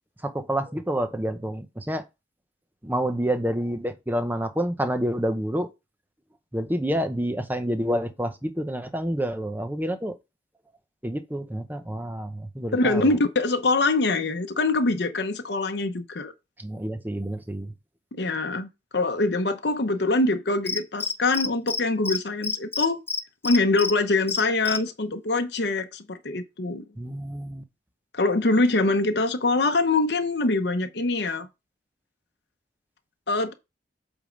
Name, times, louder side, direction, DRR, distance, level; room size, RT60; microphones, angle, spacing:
voice 1, 0.2-2.0 2.8-5.7 6.5-10.1 11.0-13.1 16.6-17.7 27.0-27.6, equal, 10° right, 0.7 m, -28 dB
voice 2, 12.7-16.3 18.1-23.0 23.4-26.9 28.1-31.5 33.3-33.5, left 2 dB, 60° left, 0.8 m, -24 dB
Cricket, 20.7-21.8 22.1-22.2 22.4-23.9 24.3-24.8, left 4 dB, 10° left, 0.3 m, -27 dB
8.1 x 3.5 x 5.2 m
head